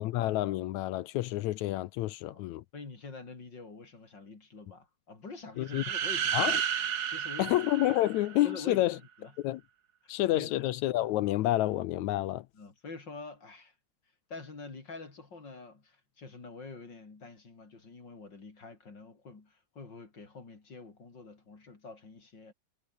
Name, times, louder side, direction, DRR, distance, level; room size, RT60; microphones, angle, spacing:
voice 1, 0.0-2.6 5.6-5.8 6.3-6.6 7.4-9.0 9.4-9.6 10.1-12.4, left 15 dB, 75° left, 1.9 m, -29 dB
voice 2, 2.7-6.5 7.1-7.6 8.4-9.3 10.3-10.6 12.5-13.7 14.3-22.5, left 3 dB, 35° left, 3.9 m, -46 dB
sound 1, 5.7-8.6, right 8 dB, 80° right, 0.8 m, -32 dB
omnidirectional pair, 3.6 m